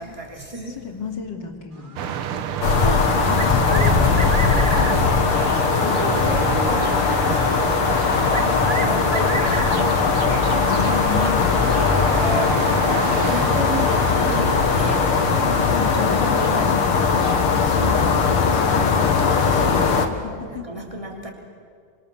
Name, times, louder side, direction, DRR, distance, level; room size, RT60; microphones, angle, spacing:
voice 1, 0.0-0.8 2.8-4.2 4.6-7.4 7.9-10.4 11.9-15.0 15.4-15.7 15.9-16.8 17.6-20.0 20.5-21.3, right 1 dB, 15° right, 0 dB, 3.7 m, -32 dB
voice 2, 0.7-2.7 3.3-3.9 5.8-6.1 10.5-11.5 15.4-18.1 18.4-20.7, left 6 dB, 55° left, 2 dB, 3.2 m, -33 dB
sound 1, 1.8-5.1 7.5-7.6 8.3-10.0 11.6-11.7 12.1-12.2 14.0-14.1, right 4 dB, 40° right, 0.8 m, -32 dB
sound 2, 2.0-20.1, right 8 dB, 85° right, 1.9 m, -30 dB
sound 3, 2.6-20.1, left 5 dB, 85° left, 2.4 m, -19 dB
27.0 x 25.5 x 7.1 m, 2.1 s
omnidirectional pair, 2.4 m